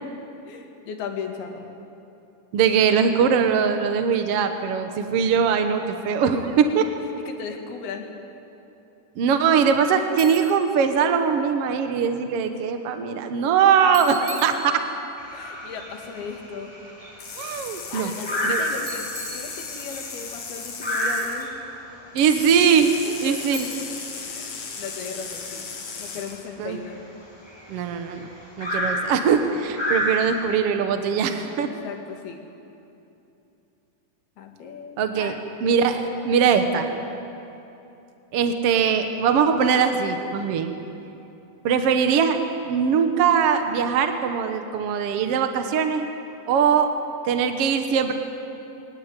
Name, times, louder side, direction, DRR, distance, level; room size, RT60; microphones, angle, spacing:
voice 1, 0.5-1.7 7.3-8.1 14.5-14.8 15.3-16.7 17.9-19.1 19.3-21.5 23.0-23.6 23.9-24.0 24.3-25.7 26.0-27.0 31.6-32.4 34.4-35.4, left 5 dB, 80° left, 3 dB, 3.9 m, -37 dB
voice 2, 2.5-6.9 9.2-14.8 17.4-18.1 18.4-18.6 22.1-22.9 23.2-23.7 26.6-26.8 27.7-28.3 28.6-31.7 35.0-35.3 35.6-36.9 38.3-40.7 41.6-42.4 42.7-46.1 46.5-46.9 47.2-48.1, right 7 dB, 70° right, 7 dB, 1.4 m, -21 dB
Bicycle, 10.2-10.7 13.9-15.2 18.9-20.1 23.5-24.2, equal, 30° right, 4.6 m, -38 dB
sound 1, 15.2-30.4, equal, 5° left, 7.6 m, -31 dB
sound 2, 17.2-21.5 22.2-26.5, left 5 dB, 55° left, 3.5 m, -36 dB
22.5 x 17.5 x 9.7 m, 2.9 s
omnidirectional pair, 4.4 m